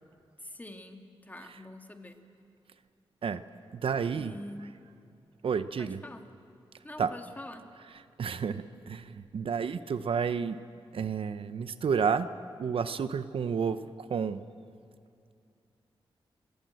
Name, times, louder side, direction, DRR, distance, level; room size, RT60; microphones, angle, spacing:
voice 1, 0.4-2.2 4.1-4.8 5.8-6.3 6.8-7.7, left 1 dB, 15° left, 5 dB, 1.9 m, -45 dB
voice 2, 3.7-4.3 5.4-6.0 7.0-7.1 8.2-10.6 10.9-12.3 12.6-14.4, right 6 dB, 70° right, 12 dB, 0.8 m, -30 dB
28.0 x 17.0 x 7.7 m, 2.4 s
wide cardioid pair, 90°, 10 cm